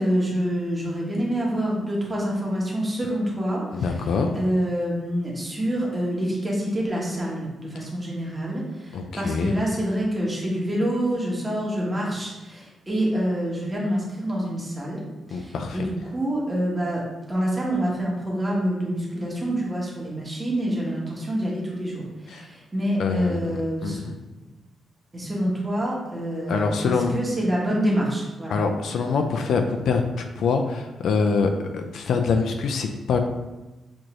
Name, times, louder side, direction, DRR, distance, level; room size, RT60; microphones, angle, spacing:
voice 1, 0.0-15.0 15.3-24.0 25.1-28.6, equal, 10° right, -5 dB, 1.0 m, -27 dB
voice 2, 3.7-4.4 8.9-9.5 15.3-15.8 22.3-22.5 23.0-24.1 26.5-27.1 28.5-33.2, left 4 dB, 65° left, 5 dB, 0.3 m, -25 dB
6.2 x 2.6 x 2.9 m, 1.1 s
wide cardioid pair, 175°, 0 cm